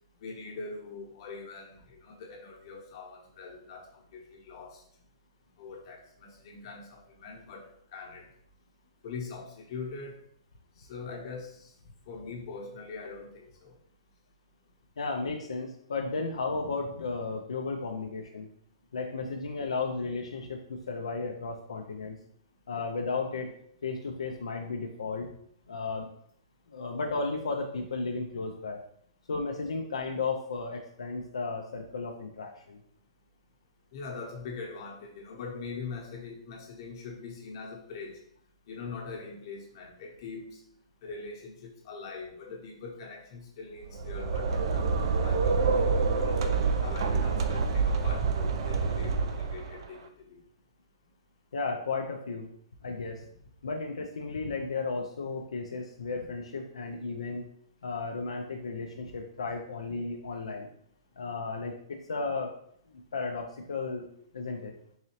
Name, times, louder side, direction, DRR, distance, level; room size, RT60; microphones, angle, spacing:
voice 1, 0.2-4.8 5.6-8.3 9.0-10.2 10.8-11.7 12.1-13.8 33.9-38.2 38.7-40.6 41.0-46.4 46.8-50.4, left 4 dB, 50° left, 0 dB, 1.0 m, -42 dB
voice 2, 15.0-18.5 18.9-22.2 22.7-23.5 23.8-25.3 25.7-26.1 26.7-28.8 29.3-32.8 51.5-52.5 52.8-53.2 53.6-57.5 57.8-60.7 61.2-62.5 62.9-64.1 64.3-64.7, left 4 dB, 85° left, 1 dB, 0.5 m, -34 dB
sound 1, 43.8-49.9, right 4 dB, 55° right, 0.4 m, -27 dB
3.9 x 2.8 x 3.0 m, 0.67 s
hypercardioid pair, 140°, 3 cm